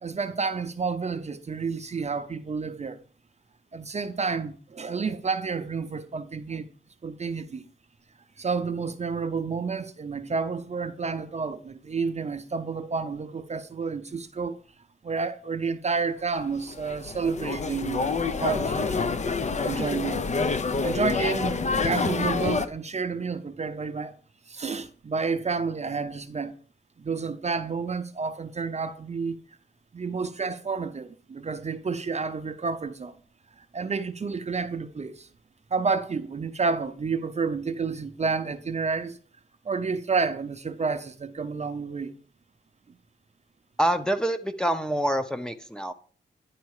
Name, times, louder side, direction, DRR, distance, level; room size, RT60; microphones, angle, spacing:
voice 1, 0.0-3.0 3.7-6.7 7.0-7.6 8.4-14.6 15.0-19.1 19.6-20.2 20.8-24.1 24.5-26.6 27.0-29.4 29.9-33.1 33.7-35.3 35.7-39.2 39.6-42.2, right 4 dB, 35° right, 0.7 m, -30 dB
sound 1, 16.4-22.7, left 4 dB, 40° left, 0.7 m, -27 dB
voice 2, 43.8-45.9, right 1 dB, 5° left, 0.7 m, -26 dB
10.5 x 4.2 x 4.8 m
cardioid pair, 85°, 19 cm